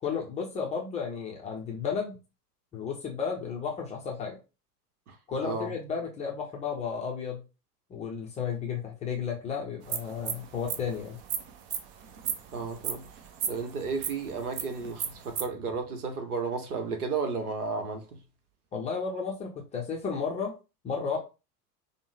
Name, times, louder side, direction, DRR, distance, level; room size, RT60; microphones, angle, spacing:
voice 1, 0.0-2.2 2.7-4.4 5.3-7.4 7.9-11.2 18.7-20.5 20.8-21.2, left 6 dB, 15° left, 0.5 m, -33 dB
voice 2, 5.4-5.7 12.5-13.1 13.5-18.0, right 4 dB, 65° right, 1.1 m, -33 dB
sound 1, 9.8-15.4, right 8 dB, 40° right, 0.6 m, -35 dB
5.1 x 2.1 x 3.3 m
figure-of-eight pair, 85°, 48 cm